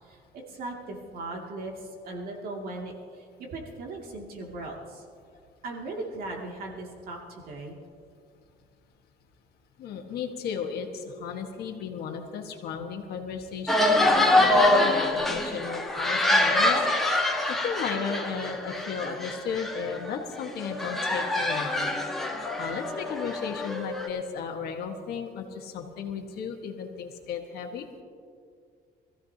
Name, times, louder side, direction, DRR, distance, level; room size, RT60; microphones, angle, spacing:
voice 1, 0.0-5.0 5.6-7.8, right 2 dB, 65° right, -1 dB, 2.6 m, -38 dB
voice 2, 9.8-16.8 17.3-21.9 22.6-28.0, left 6 dB, 70° left, 3 dB, 1.7 m, -35 dB
sound 1, 13.7-20.1 20.4-24.1, left 1 dB, ahead, 1.7 m, -25 dB
25.0 x 15.0 x 3.0 m, 2.3 s
cardioid pair, 155°, 17 cm